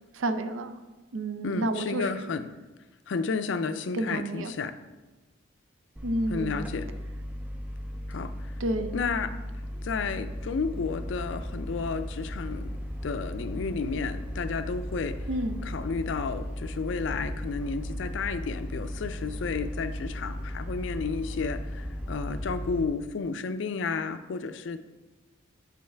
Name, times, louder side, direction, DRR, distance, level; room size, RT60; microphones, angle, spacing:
voice 1, 0.1-0.7 1.1-2.1 3.9-4.5 6.0-6.7 8.6-8.9 15.3-15.6, right 1 dB, 75° right, 9 dB, 0.5 m, -30 dB
voice 2, 1.4-2.5 3.1-4.7 6.3-6.9 8.1-8.5 8.9-9.3 9.8-12.8 13.0-15.2 15.6-24.8, left 4 dB, 65° left, 11 dB, 0.4 m, -32 dB
sound 1, 6.0-22.9, equal, 5° right, 0.4 m, -36 dB
7.4 x 5.5 x 3.4 m, 1.2 s
head